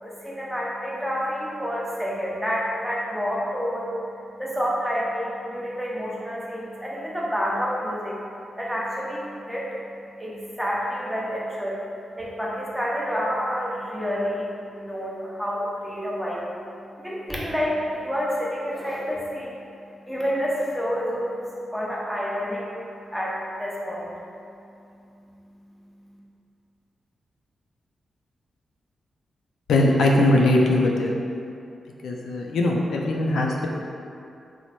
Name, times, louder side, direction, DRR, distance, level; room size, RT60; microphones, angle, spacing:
voice 1, 0.0-3.9 4.4-8.2 8.6-9.8 10.2-16.4 16.9-21.4 21.7-22.7 23.1-24.1, equal, 5° right, -5 dB, 0.7 m, -29 dB
voice 2, 29.7-31.1 32.0-33.7, left 1 dB, 85° left, -1 dB, 0.3 m, -20 dB
3.1 x 2.0 x 4.1 m, 2.6 s
cardioid pair, 75°, 0 cm